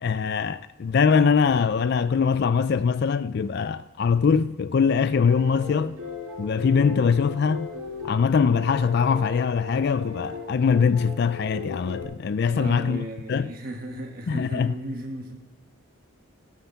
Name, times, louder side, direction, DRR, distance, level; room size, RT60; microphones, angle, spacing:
voice 1, 0.0-6.0 6.4-7.7 8.0-13.5 14.3-14.8, left 6 dB, 50° left, 0.3 m, -22 dB
sound 1, 5.2-12.0, left 4 dB, 80° right, 4.4 m, -37 dB
voice 2, 12.4-15.3, right 1 dB, 45° right, 1.2 m, -35 dB
16.5 x 6.5 x 6.9 m
head